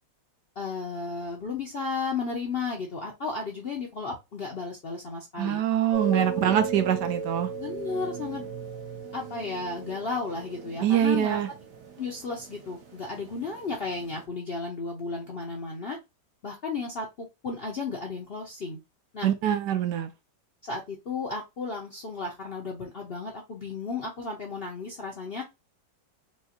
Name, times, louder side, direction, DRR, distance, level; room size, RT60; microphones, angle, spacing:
voice 1, 0.6-5.6 6.1-6.5 7.6-8.4 9.1-11.4 12.0-16.0 16.4-18.8 19.1-19.3 20.6-25.4, left 4 dB, 55° left, 0.6 m, -34 dB
voice 2, 5.4-7.5 10.8-11.5 19.2-20.1, right 10 dB, 75° right, 1.2 m, -24 dB
sound 1, 5.9-14.2, right 4 dB, 55° right, 0.9 m, -37 dB
4.4 x 2.3 x 2.9 m
omnidirectional pair, 1.9 m